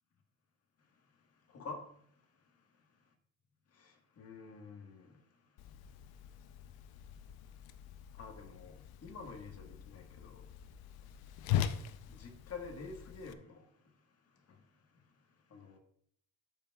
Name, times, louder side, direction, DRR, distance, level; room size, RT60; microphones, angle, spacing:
voice 1, 0.8-3.1 3.7-15.8, left 4 dB, 40° left, 1.5 m, -52 dB
Whoosh swoosh swish, 5.6-13.3, left 10 dB, 80° left, 0.6 m, -41 dB
12.5 x 5.7 x 2.3 m
cardioid pair, 150°, 36 cm